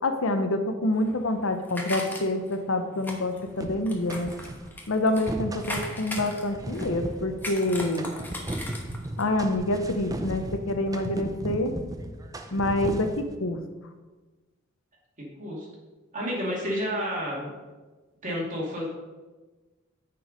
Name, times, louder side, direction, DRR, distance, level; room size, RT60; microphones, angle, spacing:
voice 1, 0.0-4.3 4.9-8.1 9.2-11.7 12.5-13.6, left 1 dB, 80° left, 7 dB, 0.8 m, -27 dB
sound 1, 0.9-2.6 3.0-5.3 5.6-7.0 7.4-9.2 9.5-9.6, left 1 dB, 10° left, 1.2 m, -38 dB
sound 2, 3.6-4.7 5.1-13.4, right 1 dB, 15° right, 0.5 m, -36 dB
voice 2, 16.1-17.5 18.2-18.9, equal, 40° right, -3 dB, 2.5 m, -30 dB
9.3 x 4.7 x 5.2 m, 1.2 s
head